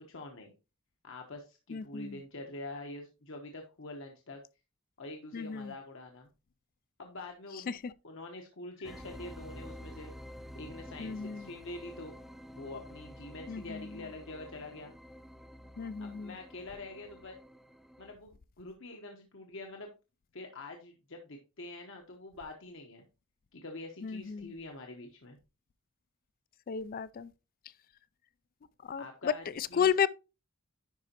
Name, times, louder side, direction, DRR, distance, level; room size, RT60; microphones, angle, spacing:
voice 1, 0.1-0.5 1.0-4.4 5.0-6.3 7.0-7.8 8.0-10.1 10.5-12.1 12.5-14.9 16.0-17.4 18.0-19.9 20.3-23.0 23.5-25.4 29.0-29.4 29.7-29.9, left 2 dB, 60° left, 1.1 m, -45 dB
voice 2, 1.7-2.2 5.3-5.7 7.7-7.9 11.0-11.5 13.5-14.0 15.8-16.4 24.0-24.5 26.7-27.3 28.8-30.1, left 7 dB, 40° left, 0.3 m, -33 dB
sound 1, 8.8-18.1, equal, ahead, 0.6 m, -49 dB
10.5 x 4.9 x 2.9 m
head